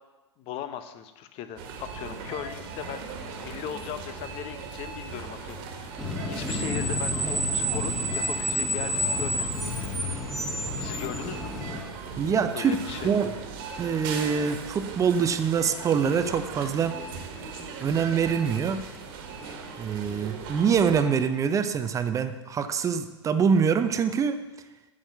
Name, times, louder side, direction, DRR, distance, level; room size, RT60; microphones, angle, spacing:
voice 1, 0.4-9.9 10.8-11.5 12.5-13.1, left 10 dB, 40° left, 10 dB, 1.0 m, -38 dB
sound 1, 1.6-21.0, right 4 dB, 50° right, 1.8 m, -39 dB
Screech, 6.0-11.8, equal, ahead, 1.7 m, -29 dB
voice 2, 12.2-12.8 13.0-13.3 13.8-17.0 17.8-18.8 19.8-24.4, right 6 dB, 20° right, 10 dB, 0.7 m, -25 dB
8.9 x 7.5 x 7.5 m, 1.1 s
figure-of-eight pair, 100°, 15 cm